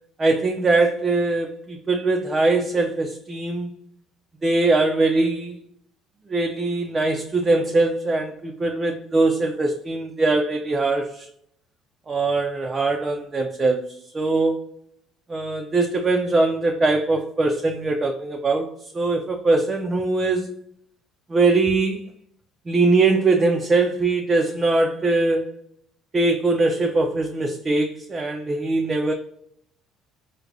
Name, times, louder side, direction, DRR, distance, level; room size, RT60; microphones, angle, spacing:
voice 1, 0.2-3.7 4.4-5.6 6.3-11.3 12.1-14.6 15.3-20.5 21.3-22.0 22.7-25.5 26.1-29.1, right 3 dB, 30° right, 2 dB, 0.4 m, -21 dB
4.6 x 2.1 x 2.5 m, 0.71 s
hypercardioid pair, 65°, 0 cm